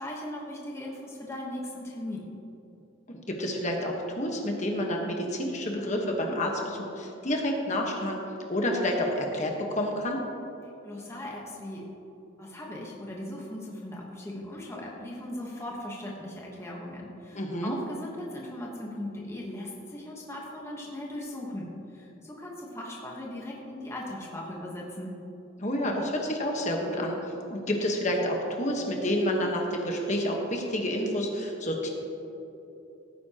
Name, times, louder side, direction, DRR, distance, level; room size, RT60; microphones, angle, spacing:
voice 1, 0.0-2.3 10.8-11.8 12.4-25.1, left 1 dB, 15° left, -3 dB, 1.2 m, -38 dB
voice 2, 3.1-8.2 8.5-10.2 17.3-17.7 25.6-27.2 27.5-31.9, left 1 dB, 35° left, 1 dB, 1.3 m, -29 dB
17.0 x 9.5 x 2.9 m, 3.0 s
head